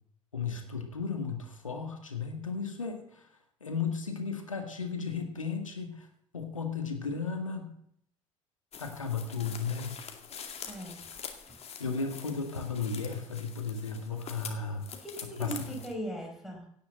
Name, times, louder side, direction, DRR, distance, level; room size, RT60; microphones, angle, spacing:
voice 1, 0.3-3.3 3.6-6.1 6.3-7.7 8.8-10.0 11.8-14.9 15.4-15.6, left 5 dB, 85° left, 4 dB, 2.0 m, -34 dB
sound 1, 8.7-15.9, left 7 dB, 40° left, 2.2 m, -45 dB
voice 2, 10.6-11.1 11.5-11.6 14.9-16.7, right 1 dB, ahead, 1 dB, 4.5 m, -39 dB
17.0 x 6.8 x 7.9 m, 0.70 s
figure-of-eight pair, 55°, 17 cm